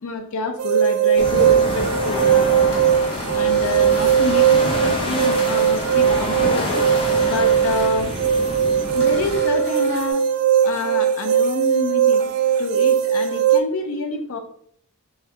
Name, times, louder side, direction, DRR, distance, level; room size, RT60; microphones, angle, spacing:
voice 1, 0.0-2.8 3.3-6.8 7.2-8.1 8.9-10.3 10.6-12.3 12.6-14.4, left 2 dB, 65° left, 5 dB, 0.6 m, -27 dB
sound 1, 0.6-13.6, right 8 dB, 80° right, 0.4 m, -19 dB
sound 2, 1.2-9.4, left 2 dB, 25° left, 0.6 m, -27 dB
sound 3, 2.7-4.8 5.4-6.2 6.6-7.9 9.0-10.1, left 2 dB, 50° left, 1.3 m, -38 dB
4.5 x 2.3 x 3.4 m, 0.64 s
head